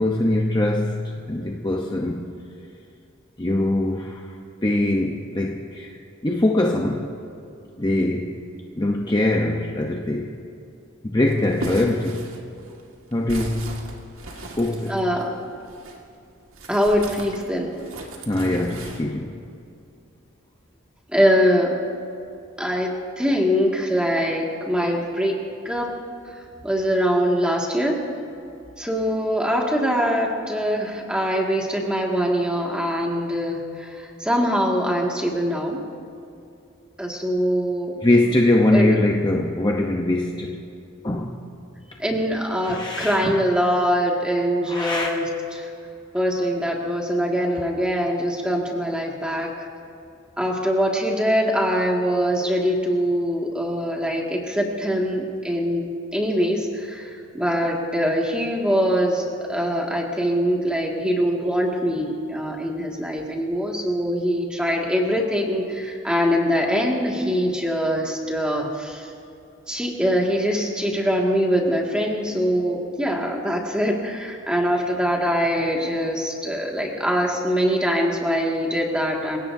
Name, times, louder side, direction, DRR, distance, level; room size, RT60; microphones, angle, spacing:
voice 1, 0.0-2.4 3.4-4.3 4.6-7.1 7.8-8.4 8.8-10.3 11.0-12.2 13.1-13.9 14.6-15.0 18.3-19.4 38.0-40.6 41.0-41.5 42.6-43.3 44.7-45.1, left 1 dB, 20° left, 0 dB, 0.8 m, -22 dB
sound 1, 11.3-16.0 16.5-19.0, right 2 dB, 85° right, 1.9 m, -37 dB
voice 2, 14.9-15.3 16.7-17.7 21.1-21.8 22.6-22.9 23.2-25.3 25.7-25.9 26.3-26.4 26.6-28.0 28.8-35.8 37.0-38.0 38.7-38.9 42.0-45.2 45.5-45.7 46.1-49.7 50.4-55.9 56.1-69.1 69.7-79.4, equal, 5° right, -1 dB, 2.0 m, -23 dB
27.5 x 17.0 x 2.7 m, 2.6 s
head